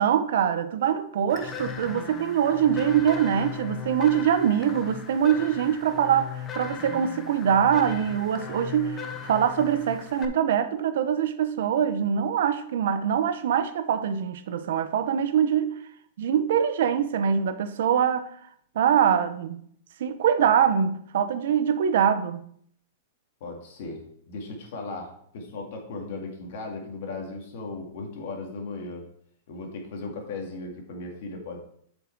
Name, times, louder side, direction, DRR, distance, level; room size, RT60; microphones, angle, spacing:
voice 1, 0.0-15.7 16.2-18.3 18.7-19.6 20.0-22.4, right 8 dB, 60° right, 0.7 m, -23 dB
sound 1, 1.3-10.3, left 7 dB, 15° left, 0.5 m, -38 dB
voice 2, 23.4-29.1 29.5-31.6, left 3 dB, 50° left, 2.0 m, -37 dB
7.8 x 5.4 x 4.5 m
supercardioid pair, 175°, 0 cm